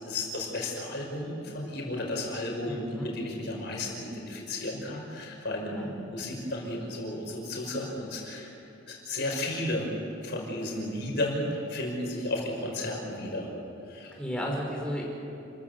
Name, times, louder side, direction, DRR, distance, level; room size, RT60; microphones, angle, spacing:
voice 1, 0.0-8.5 8.9-9.9 10.2-13.5 13.9-14.1, left 1 dB, 60° left, -1 dB, 5.6 m, -33 dB
voice 2, 2.7-3.1 5.7-5.9 14.2-15.1, equal, 5° left, -3 dB, 5.2 m, -33 dB
29.5 x 14.5 x 8.2 m, 2.9 s
head